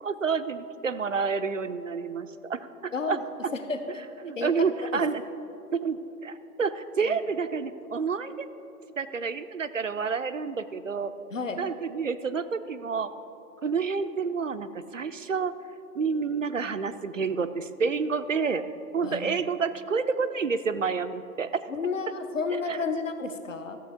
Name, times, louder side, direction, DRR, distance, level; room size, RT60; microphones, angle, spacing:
voice 1, 0.0-3.2 4.2-5.2 5.7-8.5 9.0-11.1 11.6-13.1 13.6-15.5 15.9-18.7 18.9-21.6 22.7-22.8, right 5 dB, 60° right, 12 dB, 0.5 m, -29 dB
voice 2, 3.5-3.8 4.3-4.5 4.9-5.0 7.0-7.2 11.3-11.7 19.0-19.4 21.7-23.8, left 4 dB, 55° left, 8 dB, 0.9 m, -31 dB
14.0 x 7.4 x 3.5 m, 2.8 s
figure-of-eight pair, 165°, 46 cm